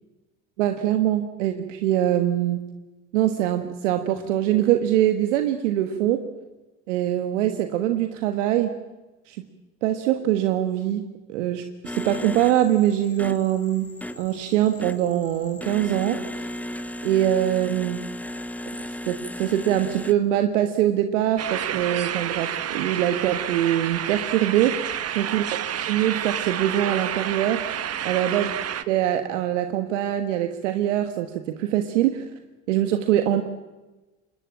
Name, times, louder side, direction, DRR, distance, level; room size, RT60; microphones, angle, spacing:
voice 1, 0.6-2.7 3.1-6.2 6.9-8.7 9.3-9.5 9.8-16.5 17.0-18.1 19.1-25.4 25.8-27.7 28.0-28.5 28.9-32.2 32.7-33.4, right 12 dB, 80° right, 7 dB, 1.5 m, -23 dB
sound 1, 11.8-20.1, equal, 5° left, 1.1 m, -35 dB
sound 2, 21.4-28.8, right 9 dB, 40° right, 1.4 m, -29 dB
26.0 x 21.0 x 8.7 m, 1.1 s
hypercardioid pair, 70°, 36 cm